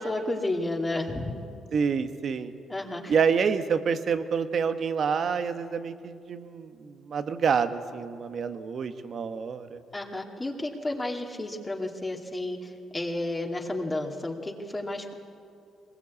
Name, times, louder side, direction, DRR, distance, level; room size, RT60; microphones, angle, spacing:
voice 1, 0.0-1.3 2.7-3.1 9.9-15.1, left 2 dB, 20° left, 1 dB, 2.3 m, -32 dB
voice 2, 1.7-2.5 3.1-9.8, right 6 dB, 55° right, 9 dB, 1.3 m, -27 dB
21.5 x 21.0 x 8.4 m, 2.4 s
cardioid pair, 90°, 0 cm